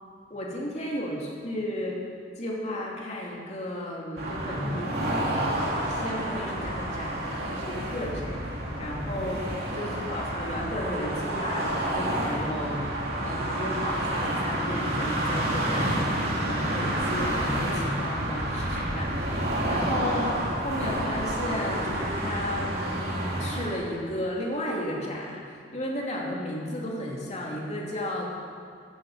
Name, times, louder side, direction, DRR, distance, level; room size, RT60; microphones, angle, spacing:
voice 1, 0.3-2.0 2.4-22.7 23.4-28.2, left 1 dB, 40° left, -3 dB, 2.9 m, -34 dB
sound 1, 4.2-23.7, right 1 dB, 55° right, 2.8 m, -29 dB
16.5 x 13.0 x 5.1 m, 2.3 s
head